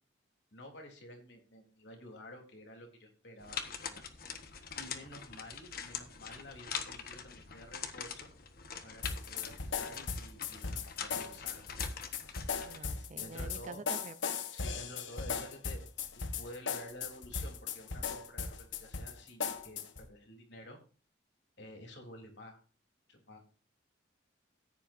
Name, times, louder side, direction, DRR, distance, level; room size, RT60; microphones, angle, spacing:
voice 1, 0.5-4.0 4.8-8.3 8.8-11.6 12.3-13.8 14.5-15.8 16.4-20.8 21.6-22.6 23.1-23.4, left 1 dB, 70° left, 2 dB, 3.6 m, -51 dB
sound 1, 3.4-12.8, left 7 dB, 50° left, 1.4 m, -44 dB
sound 2, 9.0-20.1, left 5 dB, 85° left, 1.2 m, -38 dB
voice 2, 12.6-14.2, right 3 dB, 40° right, 15 dB, 0.6 m, -47 dB
15.0 x 10.0 x 2.6 m, 0.37 s
head